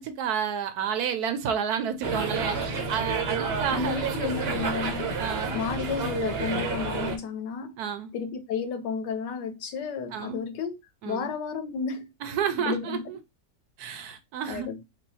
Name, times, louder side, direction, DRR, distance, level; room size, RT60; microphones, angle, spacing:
voice 1, 0.0-2.6 2.9-4.3 5.2-5.6 7.8-8.1 10.1-10.4 11.0-11.3 12.2-13.2 13.8-14.7, right 8 dB, 70° right, 1.1 m, -30 dB
sound 1, 2.0-7.2, right 4 dB, 50° right, 0.8 m, -30 dB
voice 2, 3.7-5.2 5.5-7.8 8.1-10.8 11.0-12.1 12.6-13.0 14.5-14.8, left 6 dB, 85° left, 1.5 m, -32 dB
5.3 x 2.3 x 4.0 m
omnidirectional pair, 1.8 m